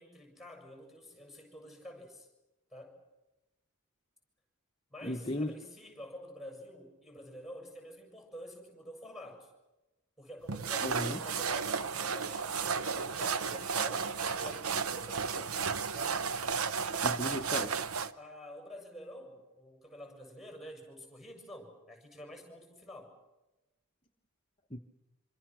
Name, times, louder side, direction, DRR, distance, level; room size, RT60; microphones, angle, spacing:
voice 1, 0.0-2.3 2.7-3.0 4.9-9.5 10.2-15.6 15.9-16.3 18.1-23.2, left 1 dB, ahead, 4 dB, 7.0 m, -49 dB
voice 2, 5.0-5.5 10.8-11.2 17.0-17.8 24.7-24.8, left 1 dB, 20° left, 2 dB, 1.1 m, -35 dB
sound 1, 10.5-18.1, right 6 dB, 75° right, 0.9 m, -33 dB
26.5 x 26.0 x 6.2 m, 1.0 s
head